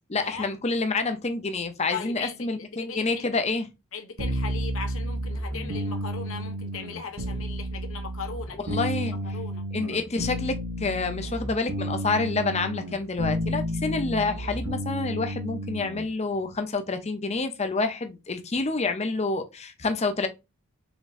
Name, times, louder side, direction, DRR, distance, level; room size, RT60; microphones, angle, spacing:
voice 1, 0.1-3.7 8.7-9.1 9.7-20.3, left 3 dB, 30° left, 0.7 m, -28 dB
voice 2, 1.9-3.3 3.9-8.8 9.2-9.6, left 5 dB, 65° left, 1.2 m, -38 dB
sound 1, 4.2-16.1, equal, 85° right, 1.3 m, -31 dB
5.2 x 3.7 x 2.6 m
head